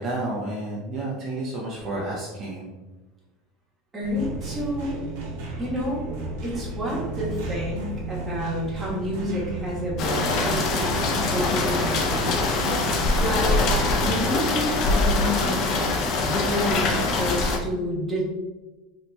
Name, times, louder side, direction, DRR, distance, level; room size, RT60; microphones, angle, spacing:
voice 1, 0.0-2.7, right 2 dB, 40° right, -5 dB, 0.7 m, -30 dB
voice 2, 3.9-5.0 5.6-6.1 6.4-12.7 13.2-13.7 14.1-15.9 16.2-18.2, equal, 20° right, -5 dB, 1.3 m, -29 dB
sound 1, 4.0-13.2, right 3 dB, 75° right, 0.9 m, -33 dB
sound 2, 10.0-17.6, left 3 dB, 50° left, 0.5 m, -23 dB
4.0 x 2.8 x 2.3 m, 1.2 s
supercardioid pair, 115°, 0 cm